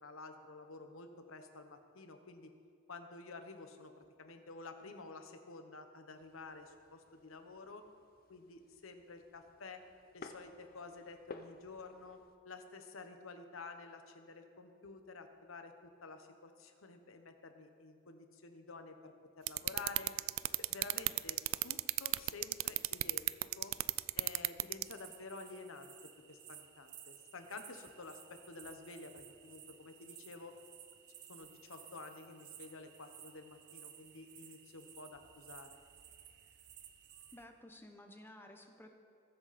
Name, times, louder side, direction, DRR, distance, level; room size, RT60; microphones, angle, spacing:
voice 1, 0.0-2.5 2.9-7.8 8.3-9.8 10.1-20.1 20.6-23.7 24.2-30.6 31.3-35.7, left 3 dB, 85° left, 6 dB, 1.1 m, -51 dB
sound 1, 6.2-12.4, left 3 dB, 45° left, 0.7 m, -56 dB
sound 2, 19.5-24.9, right 18 dB, 75° right, 0.3 m, -32 dB
sound 3, 24.8-37.5, right 10 dB, 55° right, 0.8 m, -56 dB
voice 2, 37.3-38.9, left 1 dB, 10° left, 4 dB, 0.9 m, -54 dB
20.5 x 7.9 x 4.2 m, 2.3 s
head